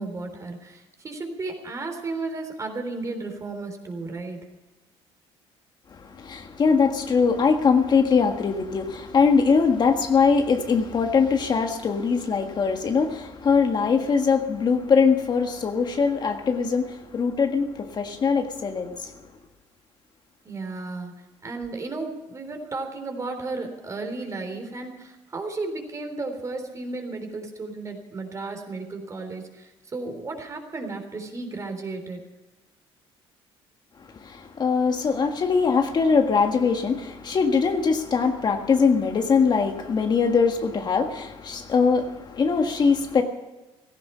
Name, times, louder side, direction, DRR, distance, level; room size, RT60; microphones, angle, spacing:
voice 1, 0.0-4.4 20.5-21.1 21.4-32.2, right 3 dB, 30° right, 5 dB, 3.6 m, -34 dB
voice 2, 6.0-19.1 34.2-43.2, left 5 dB, 40° left, 5 dB, 1.6 m, -22 dB
16.5 x 14.5 x 5.6 m, 1.1 s
cardioid pair, 105°, 11 cm